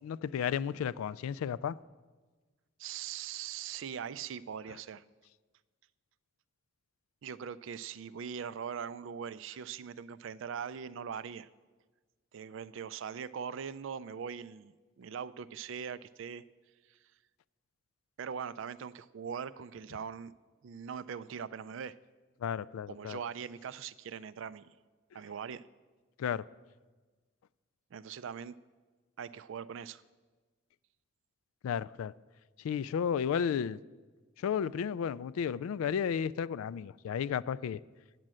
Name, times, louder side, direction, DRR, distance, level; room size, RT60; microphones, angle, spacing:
voice 1, 0.0-1.8 22.4-23.2 26.2-26.5 31.6-32.1 32.6-33.8 34.4-37.8, left 7 dB, 85° left, 0.3 m, -33 dB
voice 2, 2.8-5.0 7.2-11.5 12.3-16.4 18.2-20.3 20.6-22.0 22.9-24.7 25.1-25.6 27.9-28.5 29.2-30.0, right 7 dB, 65° right, 0.3 m, -41 dB
9.4 x 7.6 x 7.5 m
head